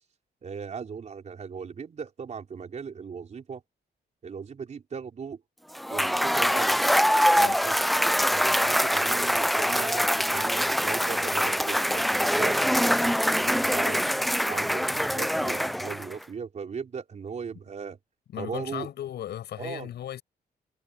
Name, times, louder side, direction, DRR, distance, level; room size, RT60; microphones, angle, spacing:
voice 1, 0.4-3.6 4.2-5.4 5.9-6.8 7.3-14.1 14.5-18.0 18.4-18.9 19.6-19.9, right 6 dB, 45° right, 4.3 m, -38 dB
Cheering / Applause / Crowd, 5.8-16.2, equal, ahead, 0.3 m, -24 dB
voice 2, 18.3-20.2, left 11 dB, 80° left, 6.9 m, -36 dB
cardioid pair, 130°, 17 cm